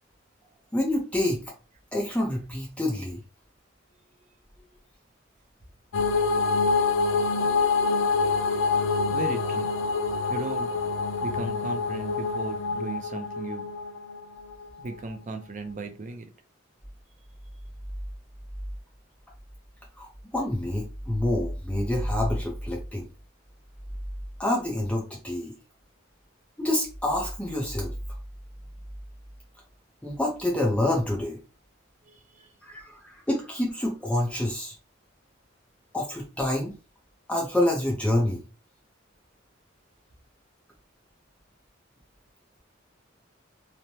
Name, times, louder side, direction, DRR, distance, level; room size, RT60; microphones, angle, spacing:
voice 1, 0.7-1.4 1.9-3.2 20.0-20.1 20.3-23.1 24.4-25.5 26.6-27.9 30.0-31.4 32.6-34.7 35.9-36.7 37.3-38.4, left 1 dB, 5° left, -2 dB, 0.5 m, -27 dB
sound 1, 5.9-14.7, left 4 dB, 80° left, 0.4 m, -26 dB
voice 2, 9.1-9.7 10.3-10.7 11.2-13.7 14.8-16.3 32.0-32.5, right 3 dB, 40° right, 7 dB, 0.4 m, -36 dB
3.1 x 2.1 x 2.7 m, 0.32 s
head